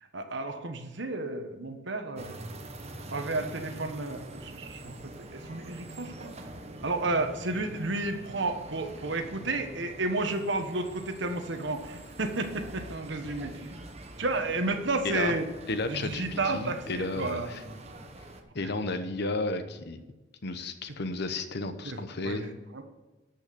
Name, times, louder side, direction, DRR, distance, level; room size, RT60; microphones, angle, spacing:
voice 1, 0.1-2.5 3.1-6.3 6.8-13.9 14.2-15.4 15.9-17.8 21.8-22.8, right 2 dB, 70° right, 6 dB, 1.3 m, -32 dB
sound 1, 2.1-18.4, right 1 dB, 35° right, 1.1 m, -45 dB
voice 2, 15.7-17.6 18.5-20.0 20.4-22.5, left 3 dB, 60° left, 10 dB, 1.0 m, -33 dB
13.0 x 5.7 x 6.8 m, 1.2 s
head